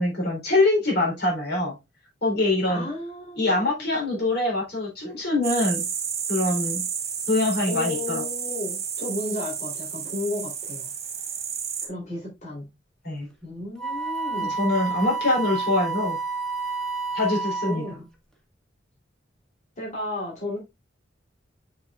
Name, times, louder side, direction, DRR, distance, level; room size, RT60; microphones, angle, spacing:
voice 1, 0.0-1.7 2.2-2.9 3.4-5.8 6.3-6.8 7.3-8.2 13.0-13.3 14.6-16.2 17.1-17.8, left 2 dB, 60° left, 3.6 m, -24 dB
voice 2, 2.7-4.0 7.7-10.9 11.8-12.7 13.4-14.6 14.9-15.0 17.6-18.1 19.8-20.6, left 2 dB, 40° left, 3.4 m, -33 dB
sound 1, 5.4-11.9, right 7 dB, 35° right, 1.8 m, -31 dB
Wind instrument woodwind instrument, 13.8-18.0, right 4 dB, 5° left, 1.7 m, -29 dB
6.8 x 6.7 x 2.4 m
head